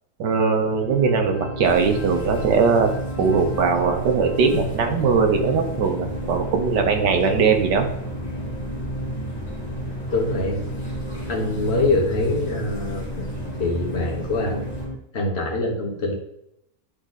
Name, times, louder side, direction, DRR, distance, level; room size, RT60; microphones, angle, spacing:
voice 1, 0.2-7.9, right 5 dB, 85° right, 5 dB, 1.6 m, -20 dB
sound 1, 0.6-15.0, equal, 65° left, 1.3 m, -34 dB
sound 2, 1.6-14.9, equal, 15° left, 1.8 m, -34 dB
voice 2, 10.1-10.6 11.3-13.2 13.6-14.7 15.1-16.1, left 2 dB, 40° left, -2 dB, 1.6 m, -24 dB
10.0 x 3.8 x 4.1 m, 0.79 s
omnidirectional pair, 1.8 m